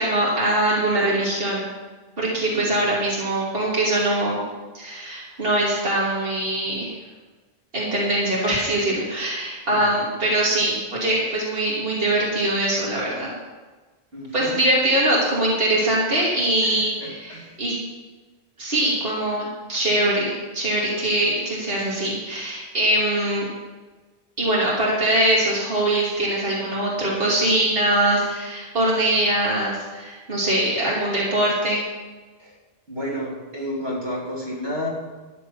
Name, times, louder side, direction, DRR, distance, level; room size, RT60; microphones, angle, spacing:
voice 1, 0.0-1.7 2.2-4.4 4.7-6.9 7.7-13.3 14.3-17.8 18.6-23.5 24.4-31.8, right 1 dB, 65° right, -5 dB, 2.8 m, -22 dB
voice 2, 2.4-2.7 9.7-9.8 14.1-14.5 16.6-17.5 32.4-32.5 32.9-34.9, equal, 90° right, -4 dB, 3.5 m, -31 dB
13.0 x 9.5 x 5.6 m, 1.3 s
omnidirectional pair, 1.0 m